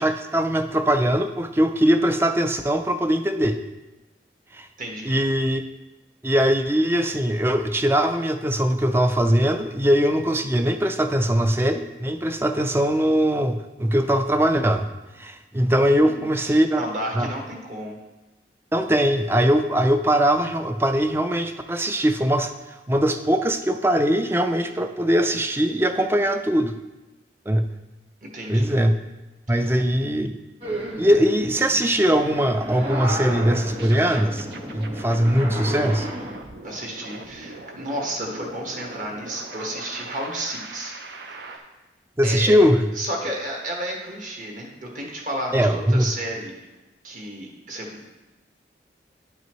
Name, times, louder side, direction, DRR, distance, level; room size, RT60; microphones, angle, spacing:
voice 1, 0.0-3.6 4.5-4.7 5.0-5.6 6.2-14.9 15.2-16.8 17.2-17.3 18.7-22.5 22.9-26.7 27.5-27.7 28.5-28.9 29.5-30.4 31.0-34.5 34.7-36.1 42.2-42.9 45.5-46.1, equal, 15° right, 8 dB, 0.4 m, -21 dB
voice 2, 4.8-5.1 16.4-18.0 28.2-28.8 29.5-29.7 36.6-40.9 41.3-41.6 42.2-42.6 42.9-46.5 47.0-48.1, right 1 dB, 45° right, 0 dB, 1.4 m, -32 dB
sound 1, 30.6-36.4, right 1 dB, 30° right, 1.6 m, -32 dB
sound 2, 33.8-41.6, right 3 dB, 65° right, 0.7 m, -41 dB
11.0 x 5.5 x 3.1 m, 1.1 s
head